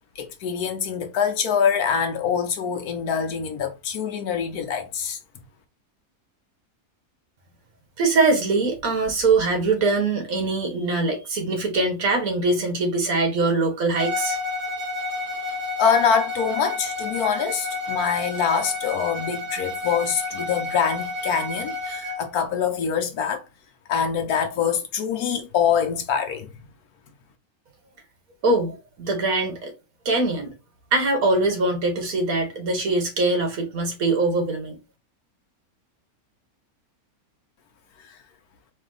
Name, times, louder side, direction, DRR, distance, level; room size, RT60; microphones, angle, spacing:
voice 1, 0.2-5.2 15.8-23.4 23.9-26.5, left 7 dB, 85° left, 1.4 m, -24 dB
voice 2, 8.0-14.4 28.4-29.7 30.1-30.5 30.9-34.8, right 3 dB, 70° right, 1.7 m, -22 dB
Bowed string instrument, 13.9-22.3, left 2 dB, 30° right, 1.2 m, -30 dB
4.2 x 2.8 x 3.8 m
omnidirectional pair, 1.5 m